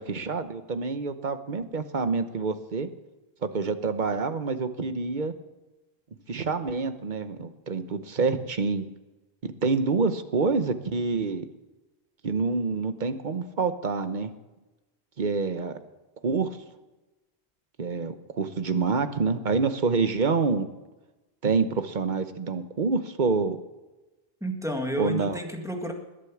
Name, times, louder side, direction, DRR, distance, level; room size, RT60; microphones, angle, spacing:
voice 1, 0.0-2.9 3.4-5.3 6.3-8.9 9.4-11.4 12.2-14.3 15.2-15.7 16.2-16.5 17.8-20.7 21.4-23.6 25.0-25.4, right 4 dB, 50° right, 10 dB, 1.1 m, -27 dB
voice 2, 24.4-25.9, equal, 5° right, 2 dB, 1.9 m, -31 dB
20.5 x 8.2 x 7.2 m, 1.1 s
omnidirectional pair, 1.1 m